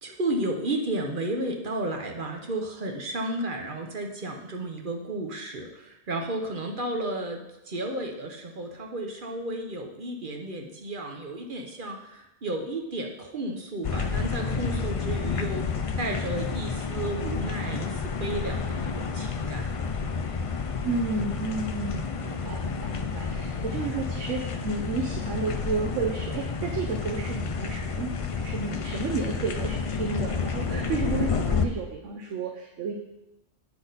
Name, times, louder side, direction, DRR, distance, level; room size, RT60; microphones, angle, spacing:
voice 1, 0.0-15.7 16.0-19.6, right 1 dB, 45° right, 3 dB, 1.0 m, -33 dB
sound 1, 13.8-31.7, left 5 dB, 60° left, 0.3 m, -30 dB
voice 2, 20.8-33.0, right 4 dB, 85° right, 2 dB, 1.1 m, -32 dB
8.6 x 6.0 x 4.0 m, 0.91 s
omnidirectional pair, 1.2 m